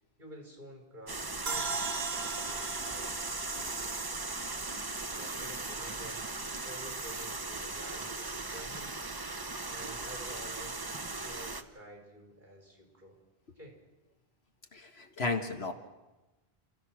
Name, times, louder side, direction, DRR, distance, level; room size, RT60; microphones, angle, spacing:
voice 1, 0.2-4.4 5.1-8.9 9.7-13.1 13.6-13.7, right 1 dB, 50° right, 1 dB, 5.5 m, -50 dB
sound 1, 1.1-11.6, right 3 dB, 25° right, 0.9 m, -38 dB
sound 2, 1.5-4.8, right 4 dB, 80° right, 1.5 m, -39 dB
voice 2, 14.7-15.7, left 3 dB, 85° left, 5 dB, 2.0 m, -34 dB
29.5 x 15.0 x 6.2 m, 1.1 s
omnidirectional pair, 1.0 m